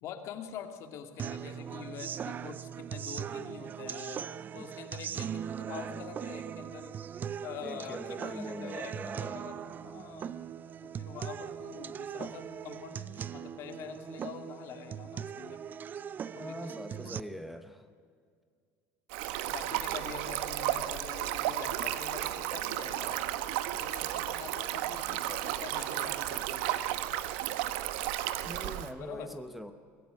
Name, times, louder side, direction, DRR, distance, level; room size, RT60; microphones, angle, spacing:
voice 1, 0.0-7.0 7.4-10.4 10.8-15.6 16.3-16.7 17.0-17.2 19.5-23.3 23.8-26.7 27.1-27.3 29.0-29.3, left 8 dB, 55° left, 6 dB, 2.2 m, -45 dB
sound 1, 1.2-17.2, right 8 dB, 30° right, 0.5 m, -40 dB
voice 2, 7.6-9.4 16.3-17.9 28.4-29.7, equal, ahead, 9 dB, 0.8 m, -42 dB
Stream, 19.1-28.9, right 13 dB, 85° right, 1.1 m, -33 dB
22.5 x 15.0 x 9.5 m, 2.1 s
cardioid pair, 135°, 6 cm